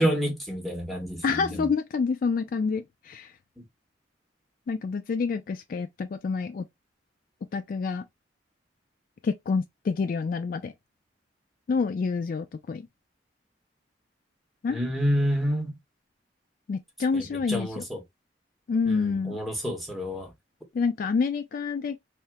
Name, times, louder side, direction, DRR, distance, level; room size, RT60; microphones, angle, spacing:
voice 1, 0.0-1.7 14.7-15.8 17.1-17.2 17.5-18.0 18.9-20.3, equal, ahead, 0.9 m, -28 dB
voice 2, 1.2-3.3 4.7-6.7 7.5-8.0 9.2-10.7 11.7-12.9 14.6-14.8 16.7-17.8 18.7-19.4 20.7-22.0, left 5 dB, 50° left, 0.3 m, -28 dB
2.8 x 2.1 x 3.3 m
head